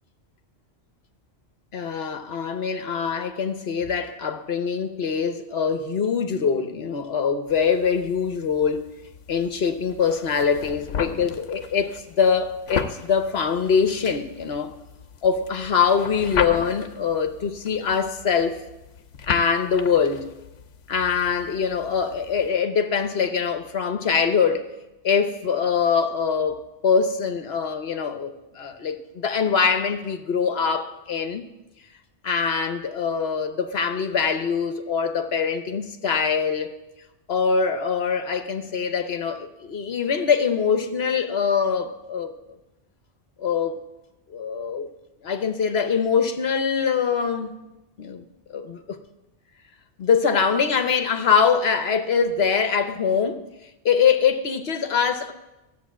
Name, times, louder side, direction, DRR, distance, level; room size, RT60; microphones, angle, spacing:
voice 1, 1.7-8.8 9.3-14.7 15.2-18.6 19.3-20.3 20.9-24.7 25.0-31.5 32.2-36.8 37.3-42.3 43.4-43.7 44.3-44.9 45.2-47.5 48.0-48.2 48.5-49.0 50.0-53.5 53.8-55.3, left 6 dB, 65° left, 1.1 m, -23 dB
sound 1, 7.5-22.5, left 7 dB, 85° left, 1.1 m, -36 dB
14.0 x 7.9 x 7.4 m
omnidirectional pair, 1.2 m